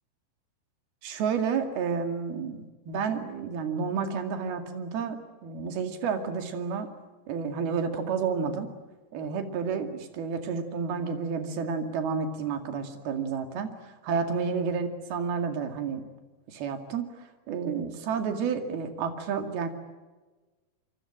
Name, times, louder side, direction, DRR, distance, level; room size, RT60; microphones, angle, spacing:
voice 1, 1.0-6.9 7.3-8.7 9.1-16.0 16.5-19.7, right 6 dB, 75° right, 6 dB, 4.2 m, -30 dB
27.0 x 23.5 x 8.8 m, 1.3 s
omnidirectional pair, 4.4 m